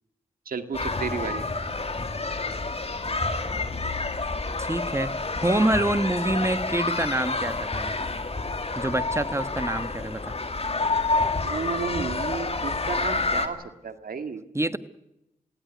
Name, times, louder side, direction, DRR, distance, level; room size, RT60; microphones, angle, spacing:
voice 1, 0.5-1.4 11.4-14.4, right 5 dB, 80° right, 9 dB, 2.1 m, -32 dB
sound 1, 0.7-13.5, left 3 dB, 45° left, 2.5 m, -28 dB
voice 2, 4.6-5.1 5.4-7.9 8.7-10.3 14.5-14.8, right 1 dB, 20° right, 12 dB, 1.5 m, -26 dB
23.0 x 16.5 x 9.4 m, 0.87 s
cardioid pair, 40°, 15 cm